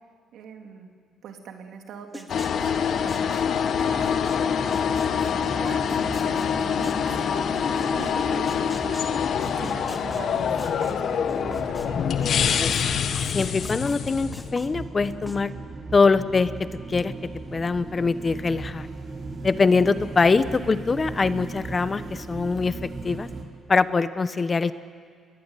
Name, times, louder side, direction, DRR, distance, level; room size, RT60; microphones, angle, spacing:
voice 1, 0.3-0.9 1.2-4.9 5.3-12.2, right 7 dB, 80° right, 4 dB, 3.3 m, -42 dB
sound 1, 2.1-8.1 8.5-11.9 12.2-15.4, left 1 dB, 5° left, 2.8 m, -43 dB
sound 2, 2.3-14.5, left 7 dB, 65° left, 1.5 m, -25 dB
sound 3, 3.6-23.4, right 3 dB, 45° right, 5.0 m, -38 dB
voice 2, 12.6-12.9 13.3-15.5 15.9-16.5 16.9-17.1 17.5-18.9 19.4-22.8 23.0-23.3 23.7-24.7, left 4 dB, 30° left, 13 dB, 1.1 m, -23 dB
29.0 x 22.0 x 9.3 m, 2.1 s
cardioid pair, 90°, 0 cm